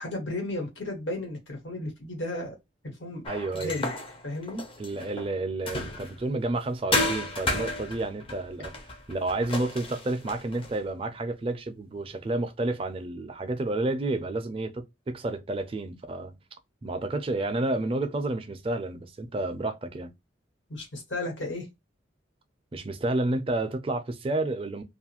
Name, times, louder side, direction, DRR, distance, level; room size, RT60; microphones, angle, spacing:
voice 1, 0.0-2.6 2.8-3.2 3.5-3.9 4.2-4.6 20.7-21.7, left 1 dB, 85° left, 1.3 m, -34 dB
sound 1, 3.2-6.3 6.9-10.8, left 2 dB, 30° left, 0.5 m, -32 dB
voice 2, 3.3-3.8 4.8-8.8 9.1-16.4 16.8-20.1 22.7-24.8, right 2 dB, 30° right, 0.4 m, -30 dB
2.5 x 2.4 x 2.8 m
head